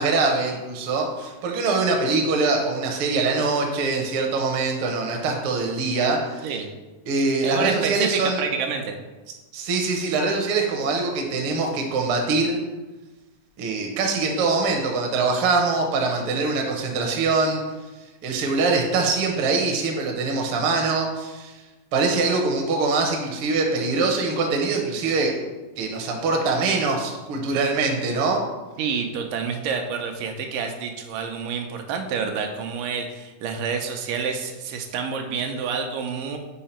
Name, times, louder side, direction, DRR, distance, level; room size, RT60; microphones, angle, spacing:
voice 1, 0.0-6.5 7.1-8.4 9.5-12.6 13.6-17.6 18.2-21.6 21.9-25.3 25.8-28.4, right 3 dB, 70° right, 2 dB, 1.3 m, -23 dB
voice 2, 7.4-8.9 28.8-36.4, right 6 dB, 90° right, 4 dB, 2.3 m, -28 dB
5.5 x 4.7 x 4.3 m, 1.2 s
omnidirectional pair, 3.7 m